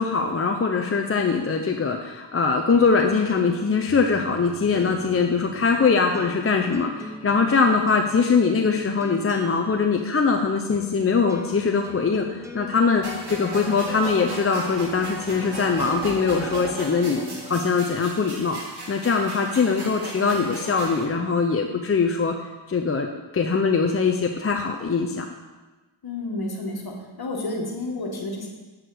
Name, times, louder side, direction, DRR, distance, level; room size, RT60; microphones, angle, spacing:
voice 1, 0.0-17.2 17.5-18.6 18.9-22.4 22.7-23.1 23.3-25.2, left 5 dB, 30° left, 2 dB, 0.6 m, -22 dB
sound 1, 2.5-17.7, equal, 5° right, 0.8 m, -42 dB
sound 2, 13.0-21.0, right 1 dB, 55° right, 1.9 m, -36 dB
voice 2, 26.0-28.5, left 2 dB, 50° left, 1 dB, 1.6 m, -30 dB
7.8 x 4.9 x 4.8 m, 1.2 s
cardioid pair, 50°, 48 cm